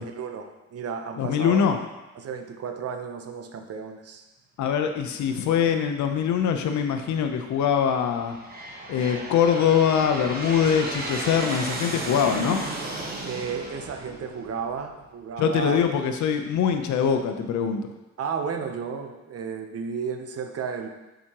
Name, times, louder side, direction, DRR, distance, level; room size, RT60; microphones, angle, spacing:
voice 1, 0.0-1.7 2.2-4.2 13.2-15.9 18.2-20.9, right 6 dB, 55° right, 5 dB, 0.7 m, -33 dB
voice 2, 1.2-1.8 4.6-8.4 8.9-12.6 15.4-17.9, left 7 dB, 70° left, 6 dB, 0.7 m, -23 dB
Aircraft, 6.2-6.7 7.4-15.0, right 2 dB, 30° right, 1.1 m, -34 dB
7.2 x 5.0 x 2.9 m, 1.1 s
cardioid pair, 90°, 30 cm